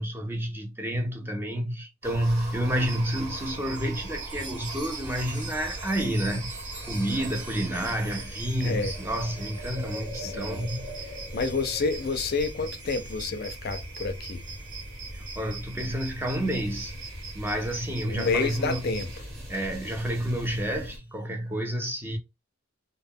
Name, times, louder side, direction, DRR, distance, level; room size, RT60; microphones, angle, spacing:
voice 1, 0.0-6.5 6.9-10.9 15.4-16.9 17.3-18.8 19.5-22.2, right 1 dB, 10° right, 0.4 m, -29 dB
sound 1, 2.0-21.0, equal, 50° right, 1.3 m, -40 dB
sound 2, 2.8-19.2, right 5 dB, 65° right, 0.7 m, -43 dB
Chime, 3.7-17.7 18.2-21.0, right 2 dB, 35° right, 0.9 m, -48 dB
voice 2, 8.6-9.0 10.1-10.7 11.0-14.5 18.1-19.2, left 4 dB, 50° left, 0.4 m, -29 dB
2.1 x 2.1 x 3.5 m
head